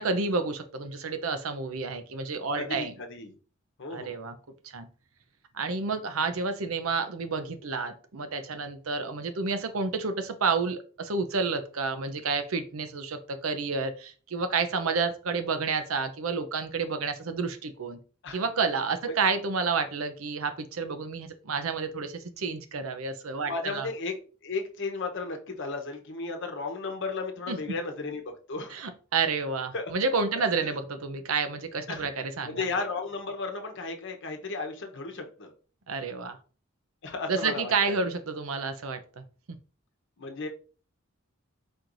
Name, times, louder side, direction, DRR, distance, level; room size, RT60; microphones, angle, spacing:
voice 1, 0.0-2.9 3.9-4.3 4.6-4.9 5.5-18.0 18.3-23.9 27.5-27.8 28.7-32.7 35.9-36.4 37.3-39.6, right 4 dB, 85° right, 9 dB, 0.7 m, -30 dB
voice 2, 2.5-3.4 3.8-4.2 18.2-18.4 23.4-24.2 24.4-28.8 29.7-29.9 31.9-32.1 32.4-35.5 37.0-38.0 40.2-40.5, left 3 dB, 60° left, 4 dB, 0.9 m, -34 dB
4.6 x 4.4 x 2.6 m, 0.38 s
head